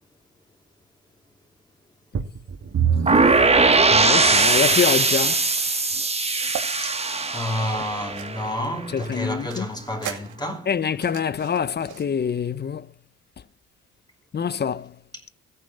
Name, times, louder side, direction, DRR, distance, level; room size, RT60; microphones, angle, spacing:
sound 1, 2.1-4.6 5.2-5.3 5.9-6.0, right 7 dB, 50° right, 2.0 m, -26 dB
sound 2, 3.1-8.9, right 3 dB, 20° right, 1.5 m, -20 dB
voice 1, 3.9-5.5 8.6-9.7 10.7-12.9 14.3-14.9, left 7 dB, 35° left, 0.7 m, -25 dB
sound 3, 6.4-6.7 7.2-8.7 9.0-12.1, right 9 dB, 80° right, 2.3 m, -38 dB
voice 2, 7.3-10.7, left 1 dB, 15° left, 3.0 m, -29 dB
14.0 x 9.1 x 6.8 m
cardioid pair, 90°, 30 cm